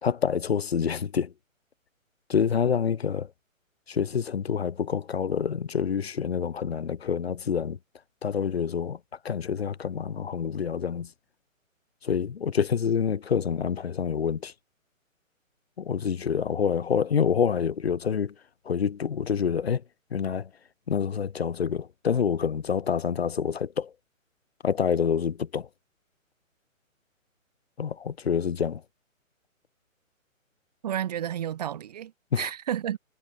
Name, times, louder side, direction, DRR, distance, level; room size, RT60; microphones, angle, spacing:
voice 1, 0.0-1.3 2.3-3.3 3.9-7.8 8.2-9.0 9.2-11.1 12.0-14.5 15.8-18.3 18.7-19.8 20.1-20.5 20.9-23.9 24.6-25.7 27.8-28.8 32.3-32.5, left 7 dB, 45° left, 5.2 m, -27 dB
voice 2, 30.8-33.0, right 10 dB, 30° right, 4.7 m, -31 dB
hypercardioid pair, 175°, 41 cm